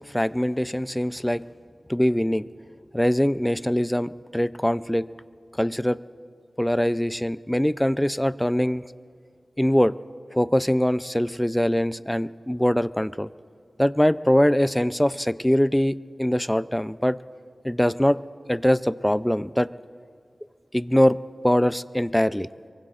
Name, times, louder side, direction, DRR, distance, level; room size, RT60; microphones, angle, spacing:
voice 1, 0.1-1.4 1.9-2.4 2.9-5.1 5.6-6.0 6.6-8.8 9.6-9.9 10.3-13.3 13.8-17.2 17.6-18.2 18.5-19.7 20.7-21.2 21.4-22.5, equal, 10° left, 15 dB, 0.4 m, -22 dB
23.5 x 23.5 x 2.5 m, 2.3 s
wide cardioid pair, 55°, 0 cm